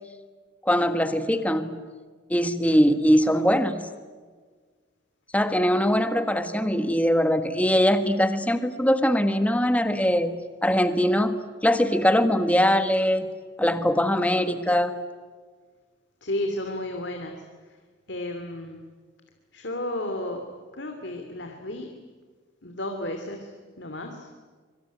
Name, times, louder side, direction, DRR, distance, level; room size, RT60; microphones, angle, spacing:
voice 1, 0.6-1.8 2.3-3.9 5.3-13.3 13.6-14.9, equal, 5° left, 10 dB, 1.5 m, -22 dB
voice 2, 16.2-17.4 18.1-18.8 19.5-20.4 20.7-21.9 22.6-23.5 23.8-24.3, left 1 dB, 65° left, 5 dB, 2.8 m, -32 dB
25.0 x 25.0 x 9.4 m, 1.5 s
head